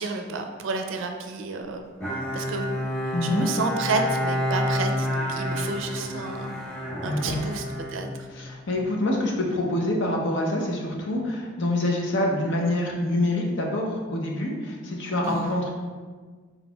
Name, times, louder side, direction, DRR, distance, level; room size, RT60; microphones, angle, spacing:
voice 1, 0.0-1.8 2.3-6.5 7.0-8.3 15.2-15.5, right 3 dB, 70° right, 5 dB, 0.4 m, -31 dB
Bowed string instrument, 2.0-8.7, equal, 5° left, 0.7 m, -29 dB
voice 2, 3.1-3.5 7.0-7.4 8.3-15.7, left 1 dB, 60° left, -1 dB, 0.6 m, -26 dB
4.3 x 3.9 x 2.2 m, 1.5 s
head